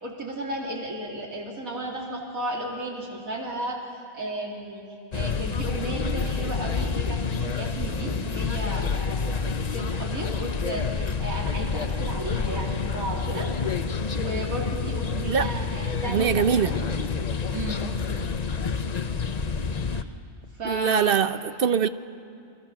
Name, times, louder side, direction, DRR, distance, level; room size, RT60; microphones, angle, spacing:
voice 1, 0.0-3.8 4.1-4.8 5.1-13.5 14.2-17.1 17.5-17.9 19.9-20.1 20.5-21.3 21.7-21.8, right 1 dB, 80° right, 3.1 m, -34 dB
sound 1, 5.1-20.0, left 5 dB, 35° left, 0.7 m, -28 dB
voice 2, 16.0-16.7 20.6-21.9, right 7 dB, 50° right, 0.8 m, -23 dB
29.0 x 24.5 x 6.0 m
omnidirectional pair, 1.4 m